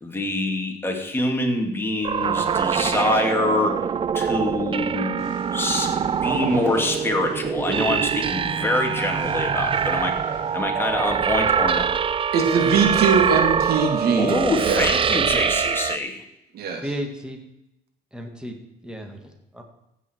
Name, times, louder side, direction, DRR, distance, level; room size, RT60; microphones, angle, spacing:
voice 1, 0.0-3.8 4.1-10.1 10.5-11.9 14.2-16.2, left 2 dB, 15° left, 2 dB, 2.6 m, -25 dB
sound 1, 2.0-16.0, right 7 dB, 30° right, 0.5 m, -24 dB
sound 2, 5.2-10.6, right 4 dB, 85° right, 4.0 m, -40 dB
voice 2, 12.3-14.8 16.5-16.8, right 5 dB, 70° right, 4 dB, 2.5 m, -21 dB
voice 3, 16.8-17.4 18.1-18.5 18.8-19.6, equal, 5° right, 3 dB, 2.2 m, -33 dB
15.5 x 8.9 x 4.7 m, 0.88 s
cardioid pair, 110°, 17 cm